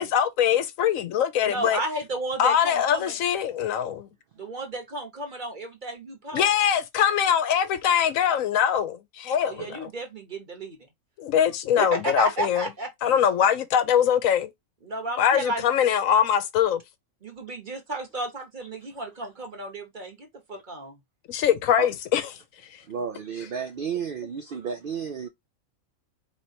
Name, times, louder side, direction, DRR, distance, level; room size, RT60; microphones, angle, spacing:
voice 1, 0.0-1.8 2.4-4.1 6.3-9.9 11.2-12.7 13.0-14.5 15.2-16.8 21.3-22.2, left 9 dB, 75° left, 1.0 m, -22 dB
voice 2, 1.4-3.2 4.4-6.5 9.4-10.9 11.8-13.2 14.8-15.6 17.2-21.0, right 2 dB, 40° right, 1.1 m, -33 dB
voice 3, 22.9-25.3, right 6 dB, 65° right, 0.5 m, -32 dB
4.4 x 3.2 x 2.8 m
omnidirectional pair, 1.4 m